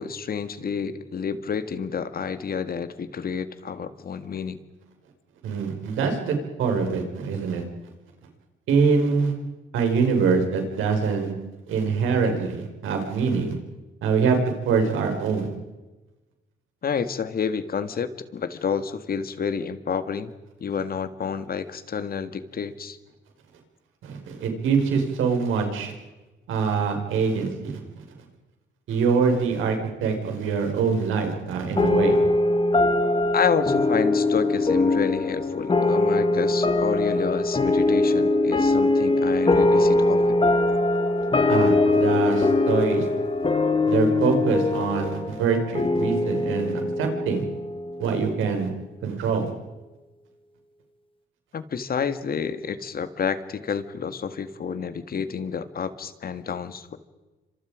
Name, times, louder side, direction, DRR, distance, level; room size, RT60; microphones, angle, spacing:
voice 1, 0.0-4.6 16.8-20.3 20.6-23.0 33.3-40.4 51.5-57.0, left 6 dB, 50° left, 12 dB, 1.9 m, -29 dB
voice 2, 5.4-7.6 8.7-9.3 9.7-11.3 11.7-13.6 14.0-15.5 24.0-25.9 26.5-28.0 28.9-32.2 41.5-43.1 43.9-47.4 48.0-48.7 49.0-49.5, right 5 dB, 85° right, 4 dB, 5.6 m, -24 dB
sound 1, 31.8-48.6, left 2 dB, 25° left, 2.5 m, -22 dB
28.5 x 26.0 x 5.1 m, 1.1 s
cardioid pair, 90°, 20 cm